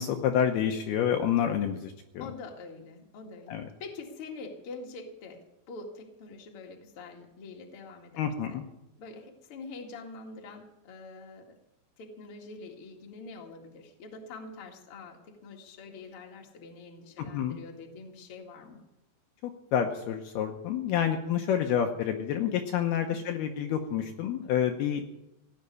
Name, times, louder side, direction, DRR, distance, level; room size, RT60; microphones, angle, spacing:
voice 1, 0.0-2.3 3.5-3.7 8.2-8.6 17.2-17.6 19.4-25.1, left 9 dB, 75° left, 4 dB, 2.7 m, -28 dB
voice 2, 2.2-8.6 9.0-11.6 12.0-18.8 23.1-23.2, left 3 dB, 40° left, 1 dB, 2.2 m, -45 dB
17.5 x 7.5 x 9.8 m, 0.91 s
omnidirectional pair, 5.0 m